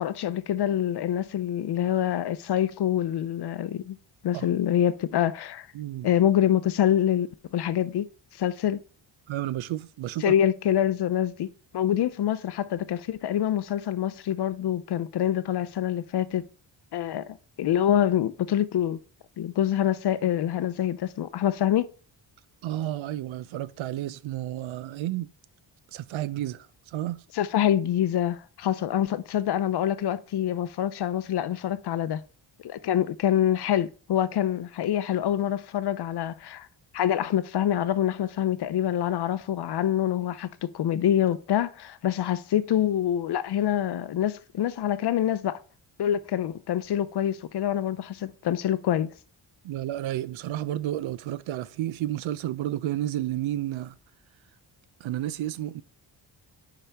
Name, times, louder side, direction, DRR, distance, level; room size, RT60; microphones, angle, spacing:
voice 1, 0.0-4.0 4.2-5.7 6.0-8.1 8.4-8.8 10.2-11.5 11.7-16.4 16.9-19.0 19.4-21.9 27.3-32.2 32.6-36.7 36.9-45.6 46.0-49.1, left 10 dB, 60° left, 0.6 m, -26 dB
voice 2, 5.7-6.1 9.3-10.3 22.6-25.3 25.9-27.2 49.6-54.0 55.0-55.8, right 13 dB, 90° right, 0.6 m, -31 dB
9.9 x 5.0 x 3.4 m
wide cardioid pair, 140°, 46 cm